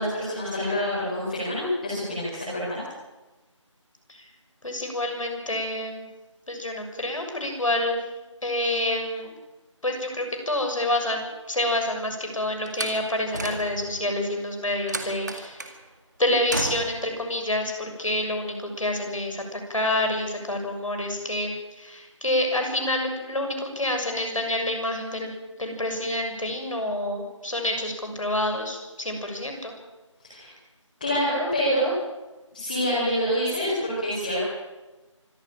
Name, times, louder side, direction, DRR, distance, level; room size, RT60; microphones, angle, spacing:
voice 1, 0.0-2.8 30.2-30.5 31.0-31.9 32.5-34.4, equal, 20° left, -7 dB, 4.5 m, -26 dB
voice 2, 4.6-6.1 6.5-8.0 8.4-9.3 9.8-15.6 16.2-25.3 25.6-29.7, left 1 dB, 80° left, 4 dB, 6.9 m, -28 dB
Slam, 12.7-14.0 14.9-15.8 16.5-17.1, right 2 dB, 35° right, 2.0 m, -33 dB
25.0 x 14.0 x 8.9 m, 1.1 s
figure-of-eight pair, 180°, 16 cm